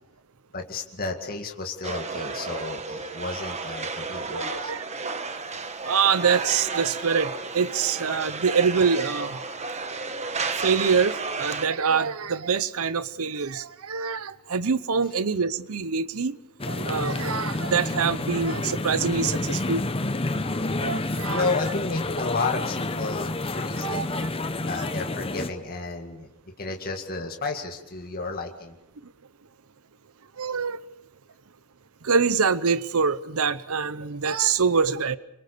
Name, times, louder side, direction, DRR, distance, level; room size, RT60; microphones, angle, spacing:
voice 1, 0.5-4.7 21.3-24.3 24.6-28.8, left 3 dB, 40° left, 3 dB, 2.1 m, -32 dB
sound 1, 1.8-11.7, right 4 dB, 30° right, 1.4 m, -32 dB
voice 2, 4.3-4.8 5.8-9.4 10.6-16.4 16.7-19.8 20.8-21.4 23.8-24.3 30.4-30.8 32.0-35.2, right 5 dB, 70° right, 16 dB, 0.8 m, -25 dB
sound 2, 16.6-25.5, left 2 dB, 25° left, 0.9 m, -29 dB
26.0 x 23.0 x 6.7 m, 0.87 s
head